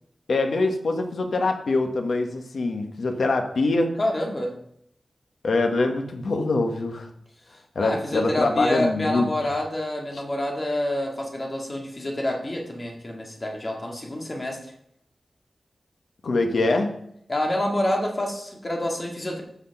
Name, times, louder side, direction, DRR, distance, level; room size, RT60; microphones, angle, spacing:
voice 1, 0.3-3.9 5.4-7.1 7.7-9.3 10.1-10.2 16.2-16.9, left 3 dB, 75° left, 4 dB, 1.3 m, -24 dB
voice 2, 4.0-4.5 7.8-14.7 17.3-19.4, left 1 dB, 30° left, 0 dB, 1.9 m, -27 dB
8.3 x 6.0 x 5.8 m, 0.71 s
wide cardioid pair, 130°, 0 cm